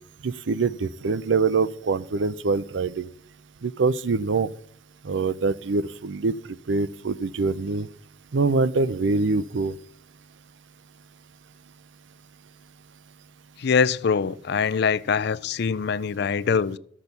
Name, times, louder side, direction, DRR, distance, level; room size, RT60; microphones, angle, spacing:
voice 1, 0.2-3.1 3.6-4.5 5.0-6.3 6.7-7.9 8.3-9.7, right 4 dB, 80° right, 0.5 m, -24 dB
voice 2, 13.6-16.8, left 6 dB, 60° left, 0.4 m, -23 dB
13.0 x 6.2 x 6.9 m
head